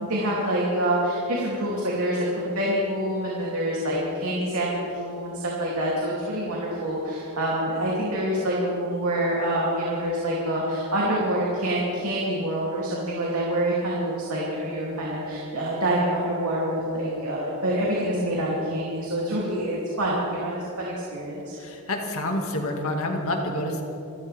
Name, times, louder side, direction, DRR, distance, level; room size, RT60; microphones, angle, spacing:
voice 1, 0.0-21.5, right 1 dB, 80° right, -5 dB, 3.0 m, -26 dB
voice 2, 21.6-23.8, left 1 dB, 70° left, 2 dB, 2.2 m, -28 dB
27.0 x 13.5 x 3.6 m, 2.9 s
head